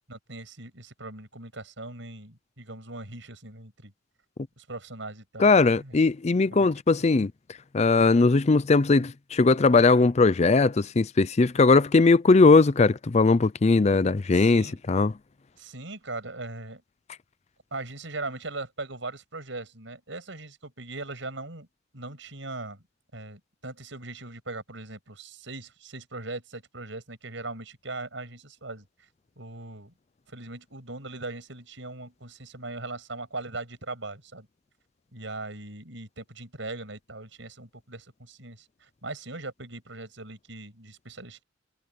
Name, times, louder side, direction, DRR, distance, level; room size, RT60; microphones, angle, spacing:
voice 1, 0.1-3.9 4.6-6.0 6.5-7.0 14.3-14.8 15.6-16.8 17.7-21.7 21.9-22.8 23.1-28.8 29.4-29.9 30.3-34.5 35.1-41.4, right 2 dB, 70° right, 6.6 m, -40 dB
voice 2, 5.4-7.3 7.7-15.1, left 3 dB, 35° left, 0.5 m, -20 dB
head